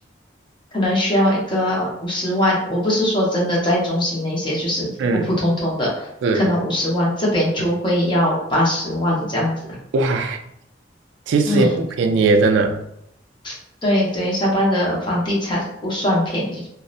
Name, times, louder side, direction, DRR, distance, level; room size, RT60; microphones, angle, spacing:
voice 1, 0.7-6.1 6.3-9.5 11.5-11.8 13.4-13.5 13.8-16.7, left 1 dB, 25° left, -4 dB, 0.6 m, -21 dB
voice 2, 5.0-5.3 6.2-6.4 9.9-10.4 11.3-11.7 12.0-12.8, right 3 dB, 75° right, 4 dB, 0.3 m, -18 dB
2.6 x 2.0 x 2.4 m, 0.76 s
head